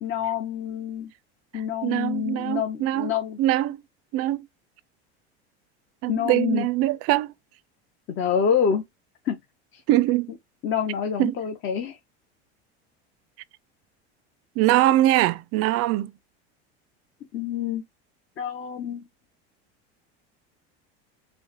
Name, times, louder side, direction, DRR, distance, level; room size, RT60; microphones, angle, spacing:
voice 1, 0.0-1.1 1.5-3.4 6.1-6.7 8.1-8.8 9.2-9.4 9.7-9.8 10.6-12.0 17.3-17.8 18.4-19.0, left 8 dB, 40° left, 0.7 m, -27 dB
voice 2, 1.5-3.8 4.1-4.5 6.0-7.3 9.9-10.3 11.2-11.4 14.6-16.1, right 15 dB, 50° right, 0.4 m, -23 dB
4.5 x 2.2 x 2.9 m
supercardioid pair, 105°, 32 cm